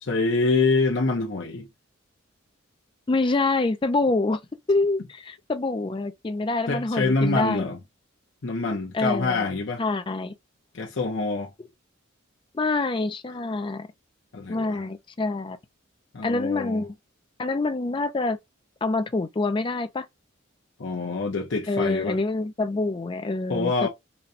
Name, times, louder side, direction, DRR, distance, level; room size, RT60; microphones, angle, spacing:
voice 1, 0.0-1.7 6.7-7.8 8.4-9.8 10.7-11.5 14.3-14.8 16.1-16.8 20.8-22.2 23.5-23.9, left 3 dB, 60° left, 0.7 m, -25 dB
voice 2, 3.1-4.4 4.7-7.7 8.9-9.5 9.8-10.3 12.5-13.9 14.5-15.6 16.2-16.9 17.4-18.4 18.8-20.1 21.7-23.9, left 3 dB, 25° left, 0.4 m, -26 dB
4.0 x 2.2 x 2.6 m
head